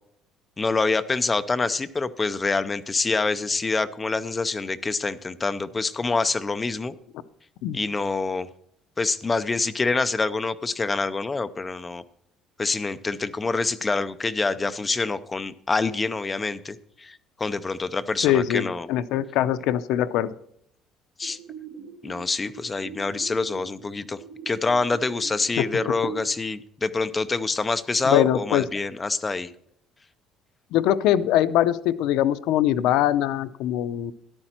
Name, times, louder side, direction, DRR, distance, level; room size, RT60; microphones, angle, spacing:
voice 1, 0.6-6.9 7.7-8.5 9.0-12.0 12.6-18.9 21.2-21.4 22.0-24.2 24.5-29.5, left 3 dB, 15° left, 12 dB, 0.5 m, -26 dB
voice 2, 18.2-20.3 25.6-25.7 28.0-28.6 30.7-34.1, left 12 dB, 70° left, 13 dB, 0.6 m, -22 dB
sound 1, 21.2-26.2, right 7 dB, 55° right, 1.4 m, -42 dB
13.5 x 11.0 x 4.4 m, 0.70 s
cardioid pair, 170°, 0 cm